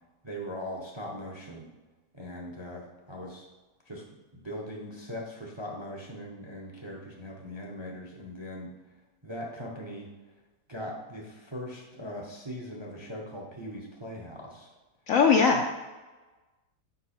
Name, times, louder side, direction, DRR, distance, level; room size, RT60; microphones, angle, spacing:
voice 1, 0.2-1.7 2.1-3.5 3.8-4.0 4.3-8.7 9.2-10.1 10.7-14.7, equal, 25° right, -1 dB, 0.5 m, -40 dB
voice 2, 15.1-15.7, left 5 dB, 70° left, 3 dB, 0.8 m, -21 dB
5.4 x 5.2 x 4.2 m, 1.2 s
omnidirectional pair, 1.8 m